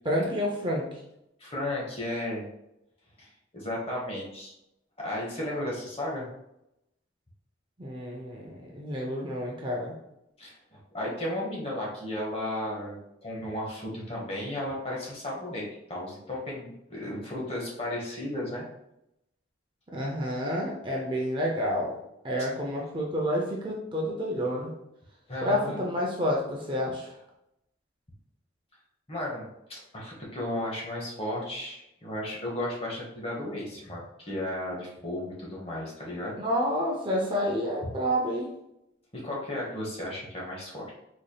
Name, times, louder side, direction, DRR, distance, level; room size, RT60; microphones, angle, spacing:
voice 1, 0.1-1.0 7.8-9.9 19.9-22.0 22.2-24.7 25.4-27.1 36.4-38.5, equal, 25° right, -2 dB, 0.5 m, -29 dB
voice 2, 1.4-2.5 3.2-4.5 5.0-6.3 10.4-15.6 15.9-18.6 25.3-25.8 29.1-36.4 39.1-40.9, left 1 dB, 30° left, -3 dB, 1.0 m, -34 dB
4.1 x 3.3 x 2.3 m, 0.84 s
head